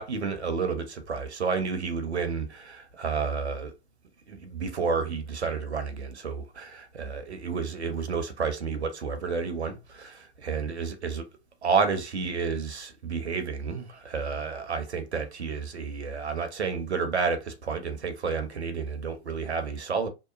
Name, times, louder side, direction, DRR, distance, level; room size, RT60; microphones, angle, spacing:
voice 1, 0.0-3.7 4.3-11.3 11.6-20.1, right 5 dB, 75° right, 0.9 m, -30 dB
2.9 x 2.1 x 2.4 m
figure-of-eight pair, 110°, 33 cm